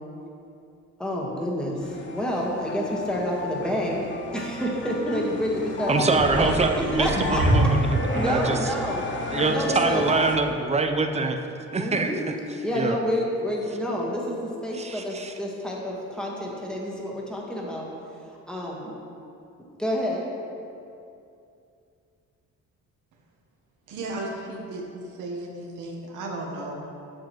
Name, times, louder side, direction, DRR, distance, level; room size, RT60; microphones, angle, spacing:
voice 1, 1.0-4.0 4.3-6.5 7.0-7.4 8.1-9.0 9.5-10.1 11.8-12.2 12.6-17.9 18.5-18.9 19.8-20.2, equal, 5° left, -3 dB, 1.4 m, -28 dB
sound 1, 1.8-10.4, left 3 dB, 40° left, 0.7 m, -34 dB
voice 2, 5.9-7.9 8.1-8.6 9.3-11.4 11.7-12.2 12.7-13.0 14.7-15.3, right 3 dB, 20° right, 5 dB, 0.6 m, -24 dB
sound 2, 6.1-8.7 9.3-9.4, right 1 dB, 35° right, 1.6 m, -25 dB
voice 3, 23.9-27.0, right 2 dB, 90° right, -1 dB, 1.2 m, -35 dB
7.3 x 7.2 x 3.1 m, 2.6 s
cardioid pair, 90°, 30 cm